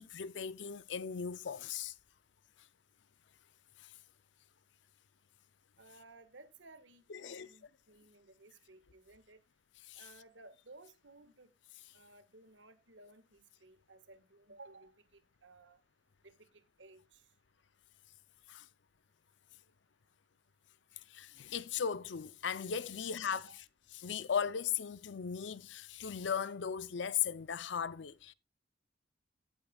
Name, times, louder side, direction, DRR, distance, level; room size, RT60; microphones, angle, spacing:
voice 1, 0.0-1.9 3.8-3.9 7.1-7.5 9.9-10.0 18.5-18.7 21.1-23.4 24.0-28.3, left 7 dB, 70° left, 0.5 m, -37 dB
voice 2, 5.8-9.4 9.9-11.5 11.9-15.8 16.2-17.3 23.2-23.6, right 2 dB, 80° right, 1.6 m, -58 dB
17.0 x 8.3 x 2.3 m
head